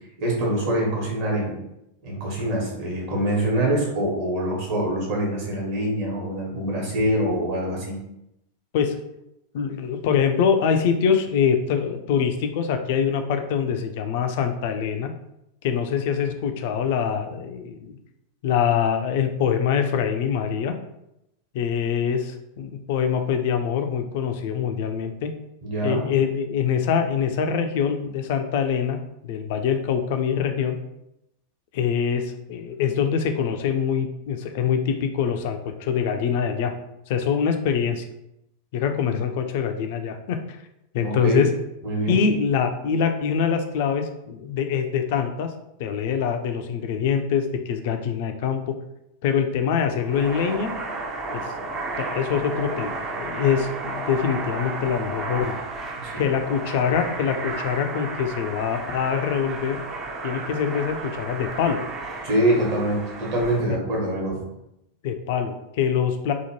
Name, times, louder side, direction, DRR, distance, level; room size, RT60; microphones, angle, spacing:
voice 1, 0.2-1.6 2.0-8.0 25.6-26.1 41.0-41.4 41.8-42.2 56.0-56.2 62.2-64.4, right 1 dB, 50° right, -3 dB, 1.1 m, -24 dB
voice 2, 9.5-15.1 15.6-18.0 18.4-20.8 21.5-25.3 25.8-30.8 31.7-36.7 37.1-38.0 38.7-40.4 40.9-41.5 42.1-45.5 45.8-48.7 49.2-50.7 51.3-51.4 52.0-55.6 56.2-59.8 60.2-61.8 63.7-63.8 65.0-66.3, left 7 dB, 50° left, 6 dB, 0.3 m, -24 dB
sound 1, 50.0-63.6, right 3 dB, 30° right, 0.4 m, -33 dB
2.8 x 2.1 x 2.9 m, 0.83 s
figure-of-eight pair, 90°, 0 cm